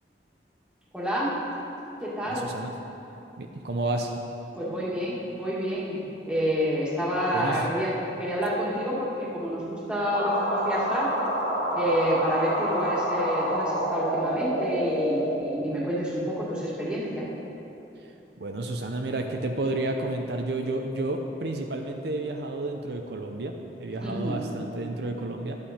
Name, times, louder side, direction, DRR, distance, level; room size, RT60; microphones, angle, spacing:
voice 1, 0.9-1.4 2.0-2.5 4.5-11.1 11.7-17.3 24.0-24.4, equal, 5° right, -6 dB, 1.8 m, -28 dB
voice 2, 2.3-2.7 3.4-4.1 7.3-7.7 18.4-23.5 23.8-25.6, right 2 dB, 65° right, 3 dB, 0.6 m, -31 dB
sound 1, 10.1-15.4, equal, 65° left, 2.0 m, -27 dB
11.5 x 8.5 x 4.3 m, 3.0 s
head